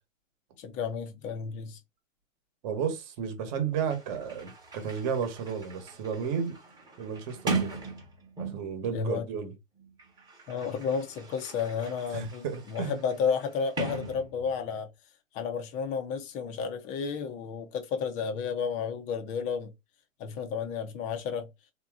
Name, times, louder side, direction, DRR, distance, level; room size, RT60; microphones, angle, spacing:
voice 1, 0.6-1.8 8.9-9.3 10.5-14.9 15.3-19.7 20.2-21.5, left 6 dB, 20° left, 0.6 m, -32 dB
voice 2, 2.6-6.6 7.0-7.7 8.4-9.5 12.1-13.0, right 7 dB, 35° right, 1.2 m, -33 dB
Sliding door, 3.5-3.6 3.8-8.8 9.8-14.7, right 4 dB, 10° right, 1.1 m, -39 dB
3.7 x 2.8 x 3.6 m
hypercardioid pair, 145°, 40 cm